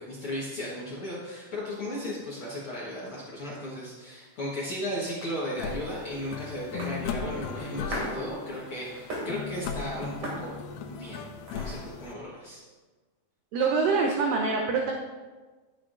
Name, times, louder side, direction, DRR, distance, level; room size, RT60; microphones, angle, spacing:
voice 1, 0.0-10.6 10.9-12.6, equal, 60° left, -7 dB, 1.5 m, -36 dB
sound 1, 4.0-12.1, right 1 dB, 50° right, 3.5 m, -42 dB
sound 2, 5.6-12.2, left 6 dB, 85° left, 2.6 m, -37 dB
voice 2, 13.5-14.9, right 4 dB, 75° right, 1 dB, 2.2 m, -25 dB
12.0 x 9.5 x 2.6 m, 1.3 s
omnidirectional pair, 4.5 m